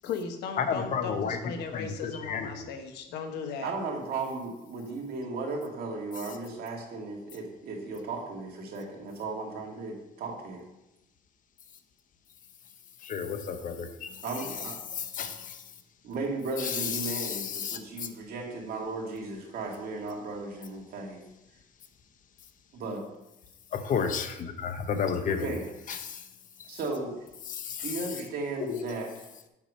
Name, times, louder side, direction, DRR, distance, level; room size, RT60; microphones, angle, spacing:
voice 1, 0.0-3.7, left 6 dB, 85° left, 6 dB, 1.1 m, -36 dB
voice 2, 0.6-1.4 1.7-2.5 13.0-14.1 14.9-15.6 16.6-17.8 23.7-25.5 26.0-26.2 27.5-27.9 28.7-28.9, left 6 dB, 50° left, 8 dB, 0.9 m, -31 dB
voice 3, 3.6-10.6 14.2-14.8 16.0-21.2 22.7-23.0 25.3-25.7 26.7-27.2 27.8-29.2, right 3 dB, 65° right, 0 dB, 2.0 m, -35 dB
7.2 x 4.8 x 5.3 m, 0.93 s
cardioid pair, 110°, 17 cm